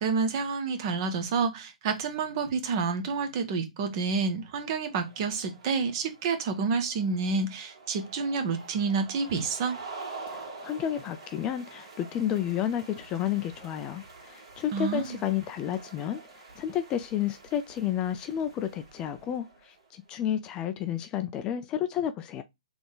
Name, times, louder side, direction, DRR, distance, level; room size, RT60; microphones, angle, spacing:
voice 1, 0.0-9.8 14.7-15.2, right 5 dB, 35° right, 1.1 m, -29 dB
sound 1, 4.3-20.0, right 3 dB, 55° right, 2.4 m, -47 dB
voice 2, 10.3-22.4, left 10 dB, 20° left, 0.4 m, -31 dB
3.8 x 3.4 x 3.7 m
hypercardioid pair, 135°, 4 cm